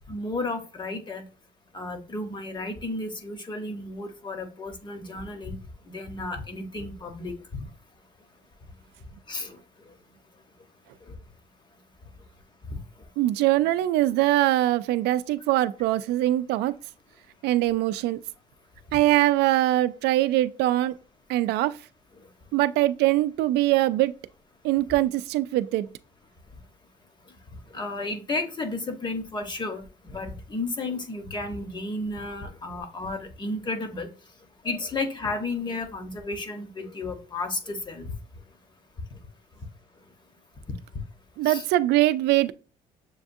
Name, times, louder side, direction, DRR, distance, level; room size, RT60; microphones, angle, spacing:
voice 1, 0.1-1.2 1.7-5.6 5.8-7.4 9.3-10.0 11.0-11.2 12.7-13.0 18.9-19.0 22.1-22.3 27.3-27.4 27.7-34.1 34.6-38.1 39.1-39.2 40.7-40.8 41.4-41.6, left 2 dB, 25° left, 0.9 m, -33 dB
voice 2, 13.2-16.7 17.4-18.2 18.9-21.0 21.3-21.8 22.5-24.1 24.6-25.9 41.4-42.5, right 15 dB, 85° right, 0.4 m, -22 dB
7.0 x 2.4 x 2.6 m
cardioid pair, 110°, 17 cm